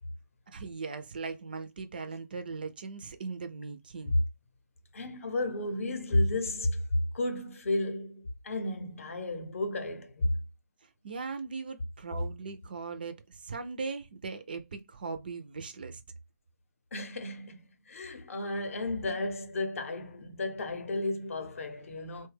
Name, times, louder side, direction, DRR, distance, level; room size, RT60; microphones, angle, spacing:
voice 1, 0.5-4.2 10.8-16.0, right 4 dB, 30° right, 0.3 m, -39 dB
voice 2, 4.9-6.8 7.1-10.4 16.9-17.6 17.9-22.3, left 2 dB, 50° left, 0.7 m, -32 dB
3.0 x 2.2 x 3.2 m
hypercardioid pair, 165°, 10 cm